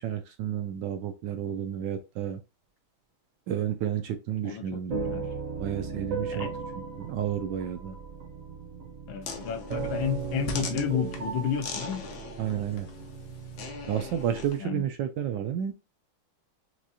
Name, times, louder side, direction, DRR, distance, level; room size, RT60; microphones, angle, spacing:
voice 1, 0.0-2.4 3.5-5.3 5.6-6.5 7.0-8.0 12.4-12.9 13.9-15.7, right 9 dB, 75° right, 1.1 m, -31 dB
voice 2, 4.4-5.3 6.3-6.5 9.1-12.1 14.6-14.8, left 9 dB, 75° left, 1.3 m, -32 dB
sound 1, 4.9-14.5, right 5 dB, 50° right, 1.0 m, -37 dB
sound 2, 9.2-14.6, left 5 dB, 60° left, 1.1 m, -40 dB
6.1 x 2.5 x 2.7 m
omnidirectional pair, 2.2 m